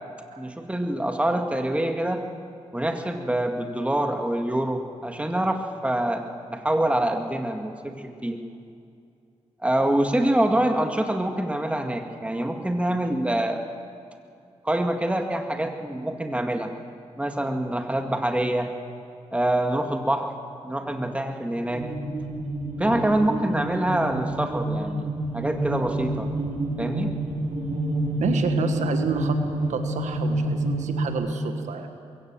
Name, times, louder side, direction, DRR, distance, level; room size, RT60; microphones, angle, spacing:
voice 1, 0.4-2.2 2.7-6.2 6.5-8.4 9.6-13.6 14.6-16.7 17.2-18.7 19.3-20.3 20.6-21.9 22.8-25.0 25.3-26.3 26.8-27.1, right 1 dB, 10° right, 4 dB, 2.1 m, -25 dB
sound 1, 21.7-31.1, right 1 dB, 70° right, 3.9 m, -28 dB
voice 2, 28.2-31.9, right 5 dB, 90° right, 7 dB, 1.4 m, -29 dB
22.5 x 16.5 x 7.6 m, 2.4 s
cardioid pair, 65°, 12 cm